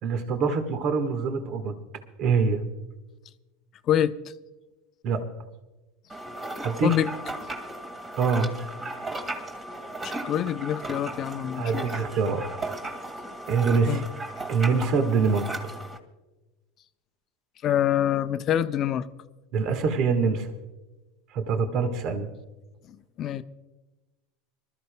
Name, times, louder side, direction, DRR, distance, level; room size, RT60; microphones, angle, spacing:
voice 1, 0.0-1.7 2.2-2.6 5.0-5.2 6.6-6.9 8.2-8.5 11.6-12.4 13.5-14.0 14.5-15.5 19.5-20.5 21.3-22.3, right 5 dB, 50° right, 1.5 m, -24 dB
voice 2, 3.9-4.3 6.8-7.1 10.0-11.9 13.8-14.0 17.6-19.1 22.9-23.4, left 10 dB, 45° left, 0.7 m, -26 dB
sound 1, 6.1-16.0, right 1 dB, 25° right, 2.1 m, -36 dB
25.5 x 13.5 x 2.3 m
hypercardioid pair, 90°, 0 cm